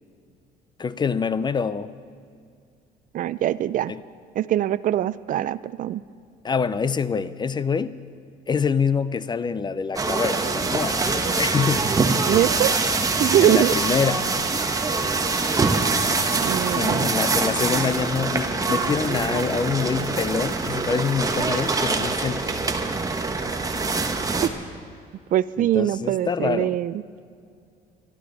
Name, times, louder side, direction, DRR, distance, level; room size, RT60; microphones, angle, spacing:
voice 1, 0.8-1.9 3.9-4.0 6.4-8.0 8.5-11.9 13.4-14.3 16.7-22.4 25.7-26.8, left 6 dB, 25° left, 0.5 m, -25 dB
voice 2, 3.1-3.9 4.3-6.0 12.2-12.8 13.2-13.7 16.4-17.1 24.4-24.5 25.3-27.0, right 12 dB, 55° right, 0.4 m, -22 dB
sound 1, 10.0-24.5, right 3 dB, 20° right, 1.1 m, -24 dB
24.5 x 12.5 x 4.0 m
cardioid pair, 110°, 17 cm